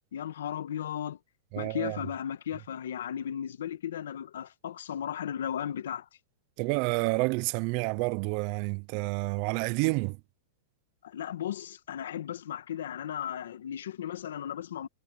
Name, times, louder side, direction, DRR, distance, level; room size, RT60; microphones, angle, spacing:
voice 1, 0.1-1.2 1.6-6.1 11.0-14.9, left 9 dB, 90° left, 1.4 m, -35 dB
voice 2, 1.5-1.9 6.6-10.2, right 27 dB, 35° right, 0.5 m, -29 dB
supercardioid pair, 170°, 0 cm